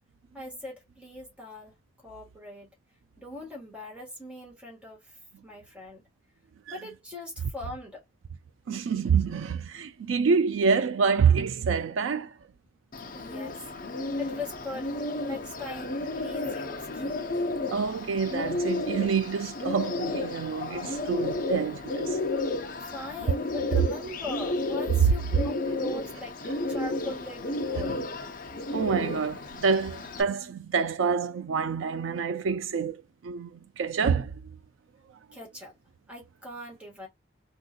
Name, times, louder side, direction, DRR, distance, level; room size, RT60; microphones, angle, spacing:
voice 1, 0.3-1.7 2.0-2.7 3.2-5.2 5.4-6.0 6.7-8.0 13.1-13.6 14.2-17.3 22.8-28.0 35.3-35.7 36.1-37.1, left 2 dB, 5° right, 1.4 m, -40 dB
voice 2, 8.7-12.3 17.7-22.2 27.8-28.0 28.7-34.3, right 5 dB, 85° right, 0.4 m, -27 dB
Bird, 12.9-30.2, left 2 dB, 45° left, 0.7 m, -32 dB
3.6 x 2.6 x 2.2 m
head